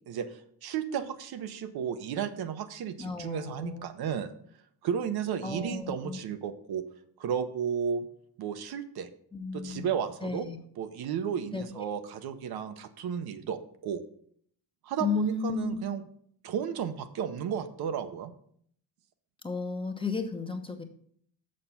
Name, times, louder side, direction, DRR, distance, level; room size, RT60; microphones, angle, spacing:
voice 1, 0.1-4.3 4.8-6.8 7.2-8.0 8.4-9.1 9.5-10.5 10.8-14.0 14.8-16.1 16.4-18.3, right 8 dB, 70° right, 9 dB, 0.8 m, -33 dB
voice 2, 3.0-3.8 5.4-6.2 9.3-9.9 10.2-10.6 11.5-11.8 15.0-15.8 19.4-20.8, left 4 dB, 15° left, 4 dB, 0.9 m, -33 dB
6.6 x 6.5 x 5.7 m, 0.63 s
cardioid pair, 125°, 39 cm